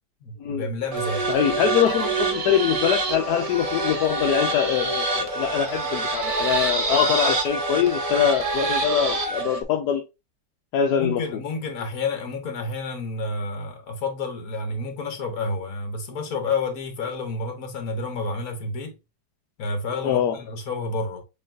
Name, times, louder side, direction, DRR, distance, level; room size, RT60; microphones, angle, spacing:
voice 1, 0.2-1.3 11.0-19.0 19.6-21.2, left 3 dB, 55° left, 1.5 m, -30 dB
sound 1, 0.9-9.6, right 3 dB, 40° right, 0.5 m, -26 dB
voice 2, 1.3-10.0 10.7-11.2 20.0-20.4, left 9 dB, 70° left, 1.1 m, -23 dB
6.8 x 3.1 x 2.5 m
omnidirectional pair, 2.0 m